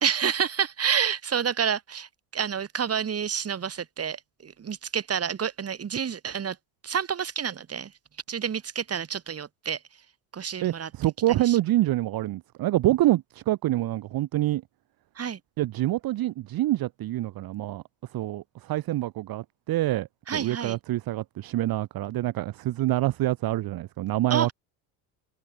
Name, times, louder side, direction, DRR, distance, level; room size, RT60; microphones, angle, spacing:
voice 1, 0.0-6.6 6.8-7.9 8.3-9.8 10.3-10.9 11.4-11.6 15.2-15.4 20.3-20.8 24.3-24.5, right 7 dB, 30° right, 2.4 m, -29 dB
voice 2, 10.6-14.6 15.6-17.8 18.1-24.5, right 15 dB, 50° right, 1.1 m, -26 dB
supercardioid pair, 100°, 47 cm